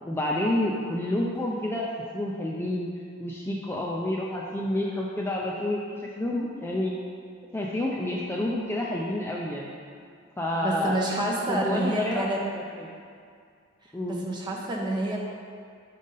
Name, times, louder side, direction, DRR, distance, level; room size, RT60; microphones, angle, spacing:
voice 1, 0.0-1.9 2.1-2.9 3.2-6.9 7.5-9.7 10.4-11.0 11.5-12.3 12.8-12.9 13.9-14.2, left 1 dB, 10° left, -3 dB, 0.4 m, -29 dB
voice 2, 10.6-12.4 13.8-15.2, right 1 dB, 20° right, -3 dB, 0.9 m, -28 dB
6.2 x 3.9 x 5.5 m, 2.2 s
head